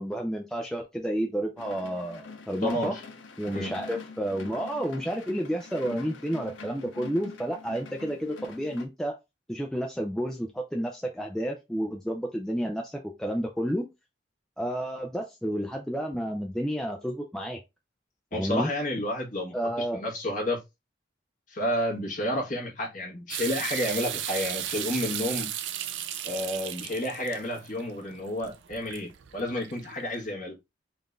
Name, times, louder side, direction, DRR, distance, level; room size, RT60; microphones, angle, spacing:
voice 1, 0.0-2.9 3.4-9.2 9.5-13.9 14.6-17.6 18.3-18.7 19.5-20.0, equal, 5° left, 0.4 m, -31 dB
sound 1, 1.6-8.9, left 4 dB, 90° left, 0.7 m, -44 dB
voice 2, 2.6-3.0 3.5-3.7 18.3-20.6 21.5-25.5 26.2-30.6, left 1 dB, 45° left, 1.4 m, -31 dB
sound 2, 23.3-30.1, right 11 dB, 80° right, 0.4 m, -35 dB
3.8 x 2.5 x 3.3 m
head